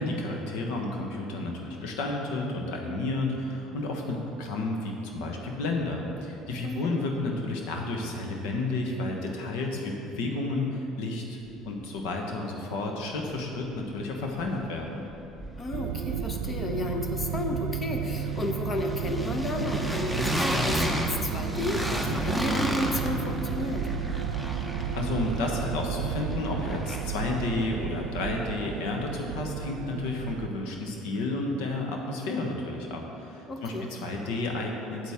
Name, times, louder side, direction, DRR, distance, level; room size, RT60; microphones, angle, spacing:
voice 1, 0.0-11.4 11.6-15.0 24.9-35.1, left 2 dB, 75° left, 1 dB, 1.2 m, -31 dB
voice 2, 6.6-7.0 15.6-23.9 33.5-33.9, left 2 dB, 35° left, 4 dB, 0.9 m, -32 dB
sound 1, 13.7-14.8 15.1-27.3, equal, 5° left, 0.8 m, -33 dB
sound 2, 15.7-30.5, right 8 dB, 75° right, 0.3 m, -33 dB
8.3 x 8.1 x 3.6 m, 2.9 s
hypercardioid pair, 75°, 0 cm